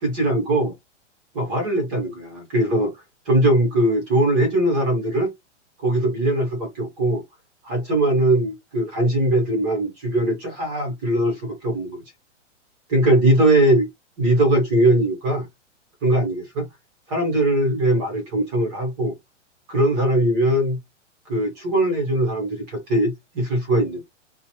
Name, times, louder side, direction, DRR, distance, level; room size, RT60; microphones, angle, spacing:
voice 1, 0.0-0.7 1.3-2.9 3.3-5.3 5.8-7.2 7.6-12.0 12.9-13.9 14.2-15.5 16.0-16.7 17.1-19.1 19.7-20.8 21.3-24.0, right 1 dB, 20° right, 0.8 m, -20 dB
2.9 x 2.1 x 2.7 m
hypercardioid pair, 165°, 36 cm